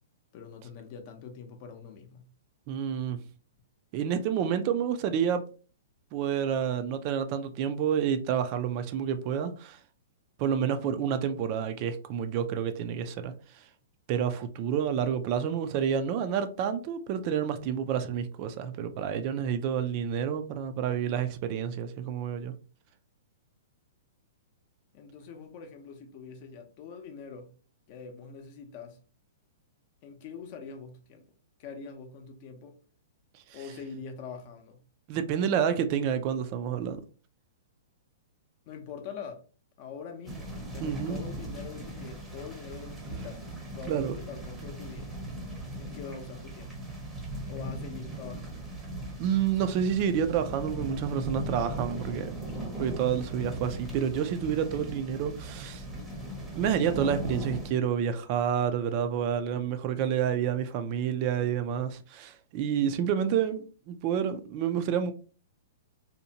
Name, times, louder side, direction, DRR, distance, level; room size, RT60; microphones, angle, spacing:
voice 1, 0.3-2.3 24.9-27.5 27.9-29.0 30.0-31.2 31.6-32.8 33.5-34.8 38.7-39.4 39.8-43.4 43.7-45.1 45.8-46.8 47.5-48.7, left 5 dB, 45° left, 0.6 m, -44 dB
voice 2, 2.7-3.2 3.9-5.4 6.1-9.8 10.4-13.6 14.1-22.5 33.5-33.6 35.1-37.0 40.8-41.2 43.9-44.2 49.2-52.3 52.8-55.8 56.5-65.1, right 8 dB, 40° right, 0.3 m, -29 dB
sound 1, 40.3-57.7, right 1 dB, 5° right, 0.7 m, -38 dB
2.7 x 2.1 x 2.7 m
hypercardioid pair, 145°, 0 cm